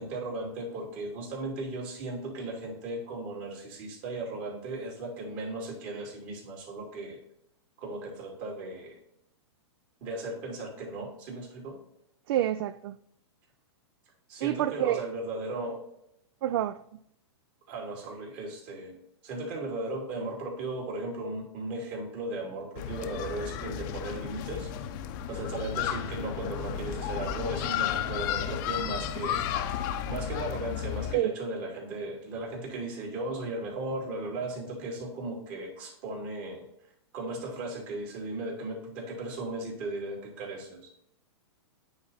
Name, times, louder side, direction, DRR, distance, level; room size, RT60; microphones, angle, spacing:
voice 1, 0.0-7.2 7.8-9.0 10.0-11.8 14.3-15.8 17.7-18.9 19.2-24.7 25.3-29.5 30.1-36.7 37.1-40.9, right 2 dB, 45° right, 2.8 m, -36 dB
voice 2, 12.3-13.0 14.4-15.1 16.4-16.8 31.1-31.3, right 13 dB, 60° right, 0.4 m, -28 dB
sound 1, 22.8-31.2, left 9 dB, 45° left, 0.7 m, -33 dB
8.7 x 4.1 x 3.9 m
hypercardioid pair, 135°, 14 cm